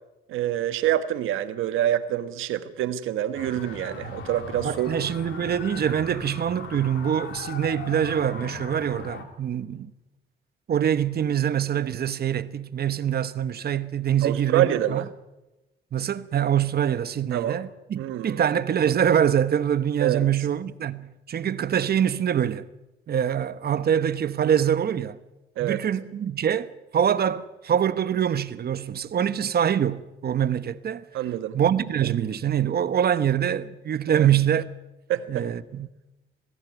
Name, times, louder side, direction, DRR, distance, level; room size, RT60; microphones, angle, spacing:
voice 1, 0.3-4.9 14.2-15.0 17.3-17.6 18.0-18.4 20.0-20.3 25.6-25.8 31.1-31.6 34.1-34.3 35.1-35.4, right 12 dB, 90° right, 1.4 m, -26 dB
sound 1, 3.3-9.2, left 5 dB, 70° left, 3.2 m, -39 dB
voice 2, 4.6-9.9 10.7-15.0 15.9-22.7 23.1-25.2 25.6-31.0 31.5-34.7 35.3-35.9, right 9 dB, 50° right, 1.1 m, -24 dB
21.0 x 15.5 x 9.2 m
cardioid pair, 90°, 20 cm